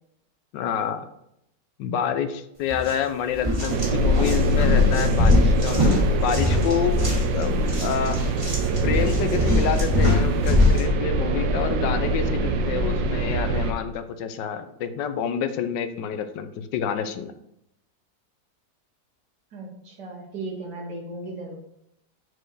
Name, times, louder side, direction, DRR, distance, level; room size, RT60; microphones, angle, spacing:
voice 1, 0.5-1.0 1.8-7.0 7.3-7.5 7.8-8.2 8.8-17.3, left 8 dB, 80° left, 10 dB, 1.3 m, -28 dB
sound 1, 2.7-2.9 3.3-10.9, left 2 dB, 20° right, 1.6 m, -23 dB
voice 2, 3.6-4.0 19.5-21.5, right 2 dB, 70° right, -1 dB, 2.2 m, -36 dB
sound 2, 3.7-13.7, right 1 dB, 90° right, 1.4 m, -23 dB
6.6 x 4.3 x 4.7 m, 0.78 s
omnidirectional pair, 1.9 m